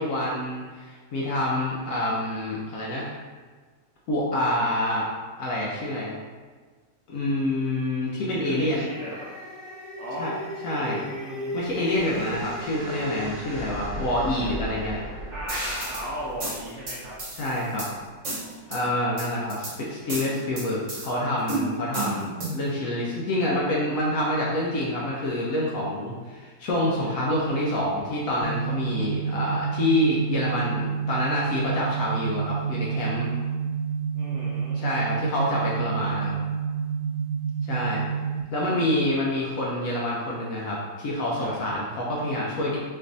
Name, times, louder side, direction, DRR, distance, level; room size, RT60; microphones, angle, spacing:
voice 1, 0.0-3.1 4.1-5.1 5.4-6.2 7.1-8.8 10.2-10.3 10.6-11.0 11.5-15.0 17.4-17.9 18.7-33.3 34.7-36.3 37.7-38.0 38.5-42.8, left 1 dB, 70° left, -4 dB, 0.8 m, -27 dB
sound 1, 8.3-17.5, equal, 50° left, 1.2 m, -37 dB
voice 2, 8.4-9.3 10.0-10.3 10.7-11.5 15.3-17.1 18.4-19.3 27.0-27.5 34.2-35.2 37.8-38.2 41.4-41.5, equal, 70° right, -7 dB, 0.6 m, -37 dB
sound 2, 15.5-16.0 16.4-17.9 18.2-18.8 19.2-19.7 20.1-21.1 21.5-22.7, right 2 dB, 50° right, 1.2 m, -32 dB
sound 3, 28.4-38.4, right 6 dB, 85° right, 1.2 m, -29 dB
3.3 x 3.2 x 2.5 m, 1.5 s
omnidirectional pair, 1.9 m